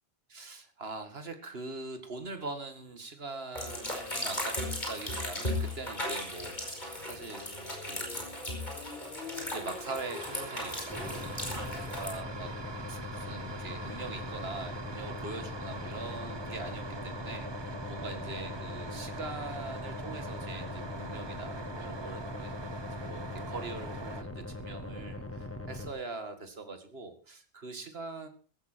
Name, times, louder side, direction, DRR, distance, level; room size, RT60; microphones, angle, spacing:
voice 1, 0.3-4.6 4.9-7.4 7.8-8.3 9.5-11.3 12.0-12.5 12.9-28.3, right 3 dB, 65° right, 7 dB, 2.3 m, -42 dB
sound 1, 3.5-12.1, left 1 dB, 45° left, 5.3 m, -36 dB
sound 2, 9.5-24.2, right 3 dB, 25° right, 0.8 m, -44 dB
sound 3, 10.9-25.9, left 2 dB, 10° left, 1.7 m, -41 dB
15.5 x 13.5 x 4.5 m, 0.37 s
omnidirectional pair, 1.1 m